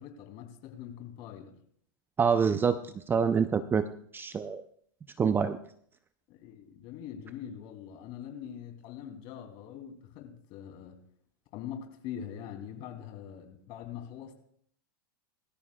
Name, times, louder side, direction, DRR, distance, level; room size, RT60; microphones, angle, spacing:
voice 1, 0.0-1.6 6.3-11.0 11.5-14.3, left 9 dB, 50° left, 2.8 m, -43 dB
voice 2, 2.2-2.8 3.1-3.9 4.1-4.6 5.2-5.6, right 6 dB, 20° right, 0.5 m, -26 dB
22.0 x 13.5 x 2.3 m
hypercardioid pair, 115°, 11 cm